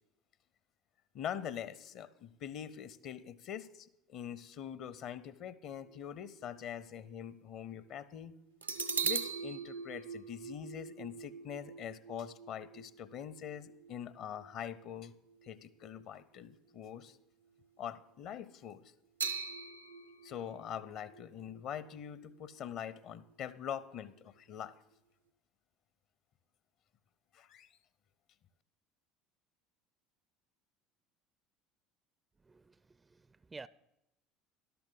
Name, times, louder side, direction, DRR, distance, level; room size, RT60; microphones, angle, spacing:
voice 1, 1.1-8.3 9.0-15.1 15.4-17.2 17.8-18.9 20.2-24.7 27.3-27.7, left 9 dB, 50° left, 0.7 m, -44 dB
sound 1, 5.7-7.2 7.7-7.8 8.6-16.0 16.4-16.6 19.2-23.0 23.3-23.4, right 5 dB, 85° right, 0.6 m, -42 dB
voice 2, 32.4-33.7, right 3 dB, 20° right, 0.4 m, -52 dB
12.5 x 12.0 x 3.9 m
figure-of-eight pair, 65°, 0 cm